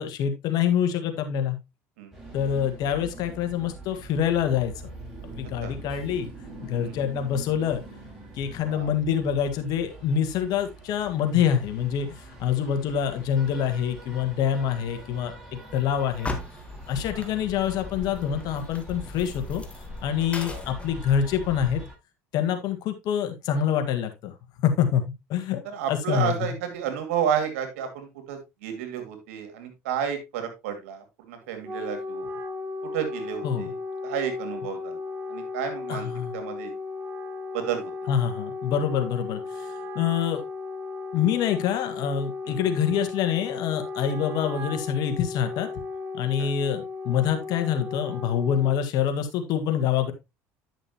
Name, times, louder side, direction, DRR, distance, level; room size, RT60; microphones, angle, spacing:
voice 1, 0.0-1.6 2.3-4.9 5.4-6.3 6.6-7.8 8.4-15.3 15.7-16.3 16.9-19.6 20.0-21.8 22.3-24.3 24.6-25.0 25.3-25.6 25.9-26.6 33.4-33.7 35.9-36.4 38.1-39.7 39.9-40.4 41.1-45.7 46.1-50.1, left 8 dB, 65° left, 7 dB, 1.7 m, -26 dB
sound 1, 2.1-21.9, right 2 dB, 10° right, 6.6 m, -45 dB
sound 2, 16.1-21.9, left 2 dB, 15° left, 1.7 m, -38 dB
voice 2, 25.6-32.3 32.9-33.8 34.0-35.0 35.3-36.1 36.3-36.7 37.5-37.9 42.5-42.6 46.4-46.5, right 8 dB, 90° right, 7 dB, 2.3 m, -31 dB
Wind instrument woodwind instrument, 31.4-48.9, left 3 dB, 30° right, 1.5 m, -35 dB
10.5 x 6.4 x 2.9 m, 0.23 s
supercardioid pair, 90°, 7 cm